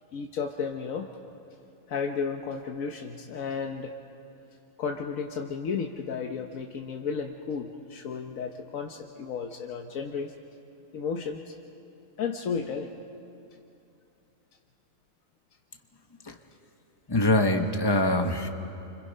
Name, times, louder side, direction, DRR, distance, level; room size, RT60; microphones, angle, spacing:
voice 1, 0.1-1.1 1.9-3.9 4.8-10.3 10.9-11.5 12.2-12.9, left 5 dB, 80° left, 3 dB, 1.4 m, -33 dB
voice 2, 17.1-18.5, left 1 dB, 20° left, 5 dB, 1.2 m, -23 dB
30.0 x 25.5 x 5.5 m, 2.7 s
omnidirectional pair, 1.4 m